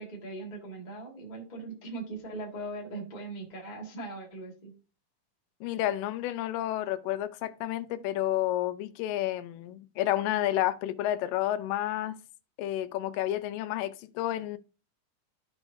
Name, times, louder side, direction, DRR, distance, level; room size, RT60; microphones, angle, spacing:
voice 1, 0.0-4.7, right 2 dB, 20° left, 1.3 m, -40 dB
voice 2, 5.6-12.2 12.6-14.6, left 13 dB, 85° left, 2.3 m, -30 dB
13.5 x 4.8 x 2.6 m
omnidirectional pair, 3.9 m